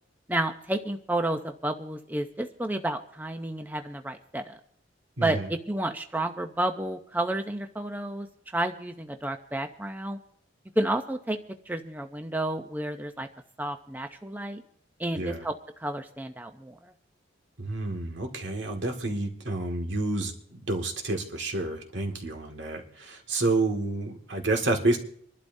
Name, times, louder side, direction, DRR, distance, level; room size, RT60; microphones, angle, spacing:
voice 1, 0.3-4.6 5.2-8.3 8.5-10.2 10.8-11.4 11.7-13.3 13.6-14.6 15.0-15.5 15.8-16.9, right 1 dB, 10° right, 6 dB, 0.6 m, -31 dB
voice 2, 5.2-5.5 15.2-15.4 17.6-25.0, right 2 dB, 70° right, 3 dB, 1.8 m, -29 dB
26.5 x 12.0 x 2.7 m, 0.65 s
head